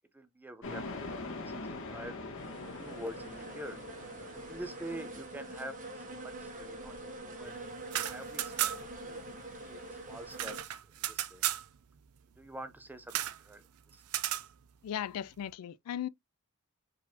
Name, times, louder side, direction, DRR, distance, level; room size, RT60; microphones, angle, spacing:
voice 1, 0.1-1.6 1.9-2.1 2.7-3.8 4.3-7.6 8.1-8.7 9.0-9.2 9.7-11.4 12.4-13.6 13.9-14.0, right 1 dB, 10° right, 0.6 m, -46 dB
sound 1, 0.6-5.1, left 2 dB, 60° left, 1.6 m, -43 dB
sound 2, 2.4-10.6, right 2 dB, 35° right, 1.4 m, -45 dB
sound 3, 7.8-9.0 9.3-9.4 9.7-11.7 13.1-13.4 14.1-14.5, right 12 dB, 75° right, 0.5 m, -34 dB
voice 2, 14.8-16.1, left 10 dB, 90° left, 0.4 m, -37 dB
4.6 x 4.0 x 2.8 m
head